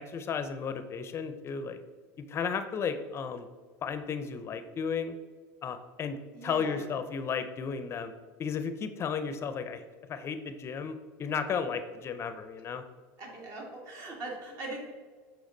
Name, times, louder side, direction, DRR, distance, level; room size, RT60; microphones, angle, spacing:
voice 1, 0.0-1.8 2.2-3.5 3.8-5.2 5.6-8.1 8.4-9.8 10.1-12.8, left 6 dB, 35° left, 10 dB, 0.5 m, -34 dB
voice 2, 6.3-6.9 13.2-14.9, right 2 dB, 50° right, 0 dB, 2.0 m, -41 dB
7.2 x 4.6 x 3.9 m, 1.5 s
supercardioid pair, 110°, 8 cm